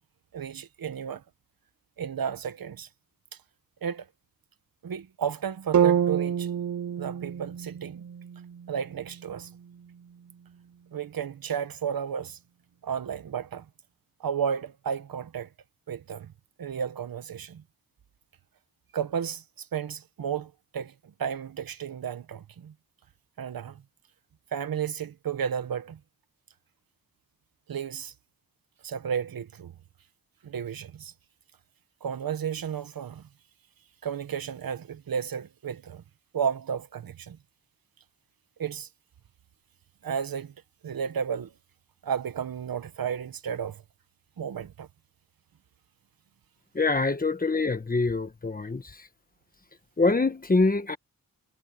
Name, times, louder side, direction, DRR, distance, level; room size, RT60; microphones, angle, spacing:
voice 1, 0.3-1.2 2.0-2.9 3.8-4.1 4.8-6.5 7.0-8.1 8.7-9.5 10.9-12.4 12.8-13.7 14.2-15.5 15.9-16.3 16.6-17.6 18.9-22.7 23.4-23.8 24.5-26.0 27.7-28.1 28.8-29.7 30.4-31.1 32.0-33.2 34.0-36.0 36.3-37.4 38.6-38.9 40.0-40.5 40.8-41.5 42.0-43.8 44.4-44.9, right 7 dB, 80° right, 1.2 m, -33 dB
sound 1, 5.7-9.8, right 9 dB, 55° right, 0.9 m, -28 dB
voice 2, 46.7-48.8 50.0-51.0, left 3 dB, 25° left, 1.4 m, -24 dB
wide cardioid pair, 140°, 35 cm